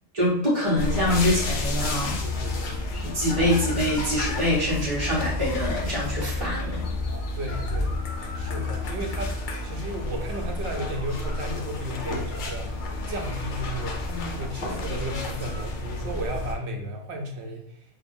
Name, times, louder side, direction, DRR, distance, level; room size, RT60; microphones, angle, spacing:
voice 1, 0.1-2.2 2.9-6.8, left 1 dB, 30° right, -8 dB, 0.8 m, -25 dB
sound 1, 0.8-16.5, left 2 dB, 55° left, 0.6 m, -30 dB
voice 2, 2.2-2.8 7.3-7.9 8.3-12.8 13.1-14.0 14.3-17.7, right 1 dB, 65° right, 2 dB, 1.0 m, -34 dB
4.9 x 2.4 x 2.6 m, 0.63 s
omnidirectional pair, 1.3 m